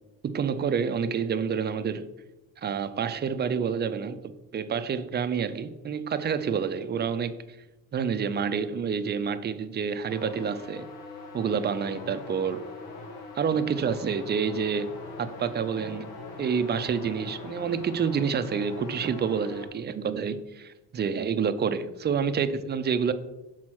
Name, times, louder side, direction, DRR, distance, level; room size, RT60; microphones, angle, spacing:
voice 1, 0.2-2.1 2.6-7.6 7.9-10.9 11.3-12.6 13.4-16.1 16.4-23.1, right 6 dB, 30° right, 10 dB, 0.5 m, -28 dB
sound 1, 10.1-19.7, left 3 dB, 85° left, 1.6 m, -42 dB
6.0 x 4.1 x 6.2 m, 0.97 s
cardioid pair, 125°, 37 cm